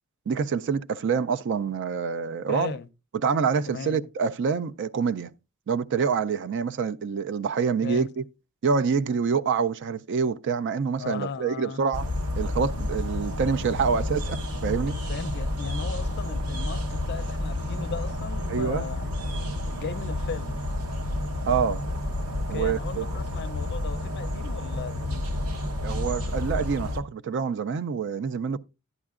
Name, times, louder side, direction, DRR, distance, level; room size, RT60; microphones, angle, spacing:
voice 1, 0.3-2.8 3.1-5.3 5.7-8.2 8.6-12.1 12.4-15.0 18.5-18.9 21.5-21.8 22.5-23.1 25.8-28.6, right 6 dB, 55° right, 0.4 m, -26 dB
voice 2, 2.5-2.9 3.7-4.0 7.8-8.1 11.0-11.8 15.1-19.1 19.7-20.7 22.5-25.3, left 5 dB, 50° left, 0.5 m, -37 dB
sound 1, 11.9-27.0, left 1 dB, 90° right, 1.0 m, -30 dB
11.0 x 9.6 x 2.4 m
head